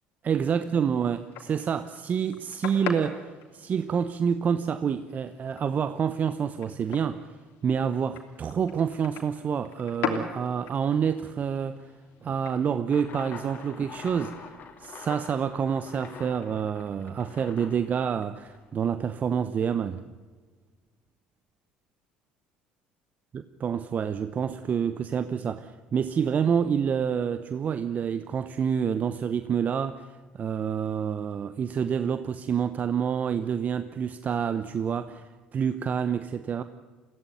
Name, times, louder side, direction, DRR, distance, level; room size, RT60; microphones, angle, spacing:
voice 1, 0.2-7.2 7.6-11.9 12.2-20.0 23.3-30.1 30.3-36.6, right 7 dB, 45° right, 12 dB, 0.9 m, -28 dB
sound 1, 0.8-12.8, left 7 dB, 70° left, 3.1 m, -40 dB
sound 2, 12.9-18.7, left 6 dB, 50° left, 2.9 m, -45 dB
22.5 x 16.0 x 9.4 m, 1.4 s
hypercardioid pair, 65°, 4 cm